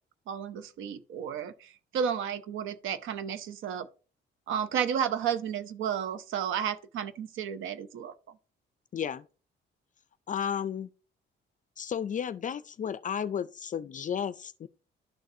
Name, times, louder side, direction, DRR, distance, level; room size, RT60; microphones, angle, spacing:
voice 1, 0.3-3.9 4.5-8.1, right 8 dB, 85° right, 0.7 m, -32 dB
voice 2, 8.9-9.3 10.3-10.9 11.8-14.7, left 8 dB, 40° left, 0.4 m, -33 dB
11.5 x 4.0 x 2.7 m
cardioid pair, 90°, 20 cm